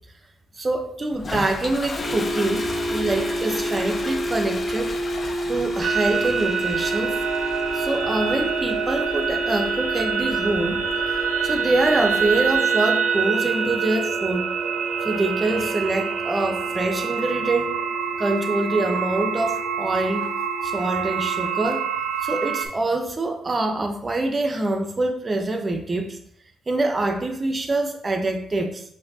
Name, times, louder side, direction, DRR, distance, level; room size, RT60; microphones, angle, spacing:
voice 1, 0.5-5.0 5.5-7.2 7.7-14.5 15.0-17.8 18.2-20.3 20.6-21.9 22.2-26.2 26.7-28.8, right 2 dB, 25° right, 0.6 m, -25 dB
Toilet flush, 1.1-12.6, left 3 dB, 35° left, 0.4 m, -37 dB
sound 1, 2.0-21.7, right 1 dB, 50° left, 1.4 m, -31 dB
sound 2, 5.8-22.7, right 6 dB, 80° right, 0.5 m, -26 dB
5.7 x 2.7 x 2.7 m
cardioid pair, 90°, 0 cm